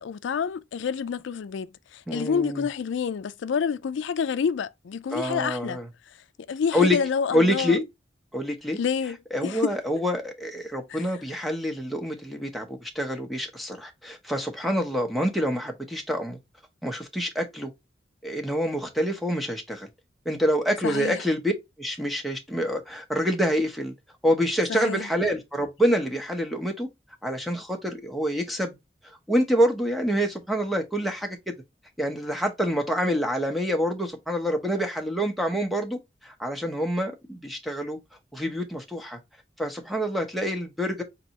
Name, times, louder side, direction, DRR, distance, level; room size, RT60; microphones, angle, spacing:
voice 1, 0.0-5.8 6.1-6.2 6.5-7.8 8.8-9.2 9.4-9.7 10.9-11.1 20.8-21.2 24.7-25.1, left 6 dB, 80° left, 0.4 m, -28 dB
voice 2, 2.1-2.7 5.1-5.9 6.7-7.0 7.3-7.8 8.3-8.8 9.3-16.4 16.8-17.7 18.2-19.9 20.3-21.5 21.8-23.9 24.2-26.9 27.2-28.8 29.3-31.5 32.0-38.0 38.3-39.2 39.6-41.0, equal, ahead, 0.8 m, -26 dB
4.1 x 3.3 x 2.8 m
head